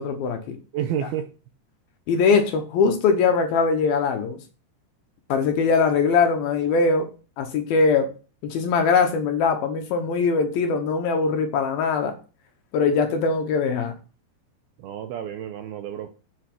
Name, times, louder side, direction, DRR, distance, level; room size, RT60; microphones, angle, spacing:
voice 1, 0.0-0.6 2.1-4.4 5.3-7.1 7.4-8.1 8.4-12.1 12.7-13.9, left 5 dB, 70° left, 5 dB, 2.6 m, -21 dB
voice 2, 0.7-1.3 14.8-16.1, right 10 dB, 80° right, 7 dB, 2.3 m, -30 dB
8.1 x 7.1 x 6.0 m, 0.36 s
omnidirectional pair, 5.2 m